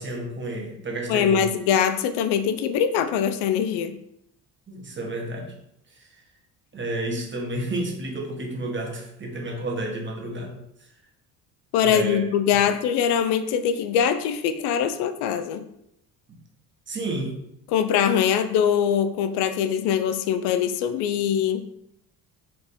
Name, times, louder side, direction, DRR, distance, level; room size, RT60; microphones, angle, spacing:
voice 1, 0.0-1.5 4.7-5.5 5.9-6.1 6.7-10.6 11.8-12.2 12.5-12.6 16.3-16.4 16.9-17.4, right 1 dB, 30° right, 1 dB, 1.1 m, -31 dB
voice 2, 1.1-4.0 11.7-15.6 17.7-21.6, left 8 dB, 80° left, 10 dB, 0.5 m, -22 dB
4.0 x 2.9 x 3.5 m, 0.78 s
supercardioid pair, 85°, 40 cm